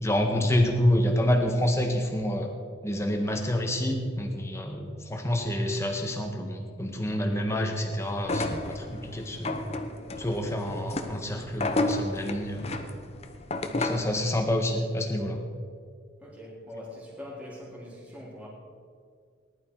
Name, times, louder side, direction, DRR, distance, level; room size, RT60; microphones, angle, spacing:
voice 1, 0.0-2.5 2.8-9.6 10.2-12.8 13.7-15.4, left 1 dB, 15° left, 3 dB, 1.5 m, -28 dB
sound 1, 8.2-14.2, left 2 dB, 30° left, 0.9 m, -32 dB
voice 2, 16.2-18.5, left 1 dB, 5° right, -6 dB, 3.5 m, -42 dB
19.0 x 11.5 x 4.7 m, 2.2 s
head